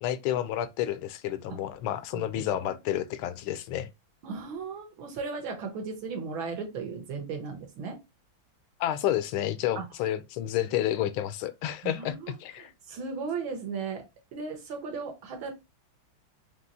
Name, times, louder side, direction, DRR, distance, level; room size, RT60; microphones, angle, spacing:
voice 1, 0.0-3.9 8.8-12.7, left 12 dB, 80° left, 1.4 m, -30 dB
voice 2, 2.1-2.8 4.2-8.0 9.8-9.9 11.8-12.3 12.6-14.0 14.3-15.5, right 5 dB, 75° right, 2.0 m, -36 dB
5.4 x 3.0 x 2.7 m
omnidirectional pair, 2.3 m